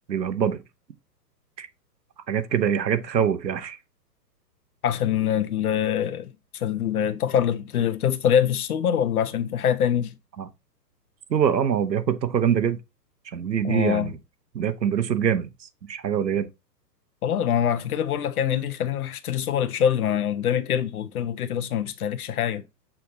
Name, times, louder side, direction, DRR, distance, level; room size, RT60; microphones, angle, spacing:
voice 1, 0.1-0.6 1.6-1.7 2.3-3.8 10.4-10.5 11.3-12.8 13.3-14.2 14.5-15.5 15.9-16.5, right 8 dB, 85° right, 1.1 m, -24 dB
voice 2, 4.8-10.1 13.6-14.1 17.2-22.6, left 9 dB, 60° left, 1.1 m, -24 dB
6.9 x 3.8 x 4.0 m
hypercardioid pair, 135°, 49 cm